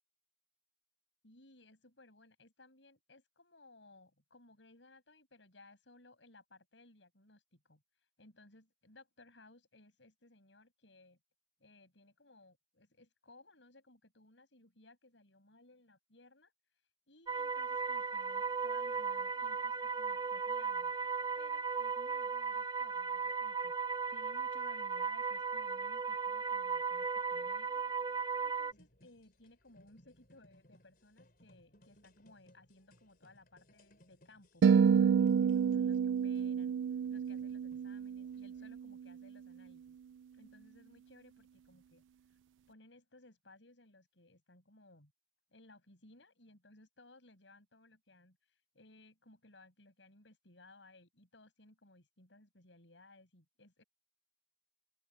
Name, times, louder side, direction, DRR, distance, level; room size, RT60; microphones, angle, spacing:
voice 1, 1.2-11.2 11.6-16.5 17.1-20.9 21.4-27.8 28.1-36.7 37.1-39.9 40.3-42.0 42.7-45.1 45.5-53.8, left 2 dB, 80° left, 6.0 m, -61 dB
sound 1, 17.3-28.7, right 5 dB, 20° right, 0.5 m, -36 dB
sound 2, 28.7-38.8, left 1 dB, 50° left, 4.2 m, -66 dB
sound 3, 34.6-38.9, right 7 dB, 80° right, 0.3 m, -29 dB
open air
head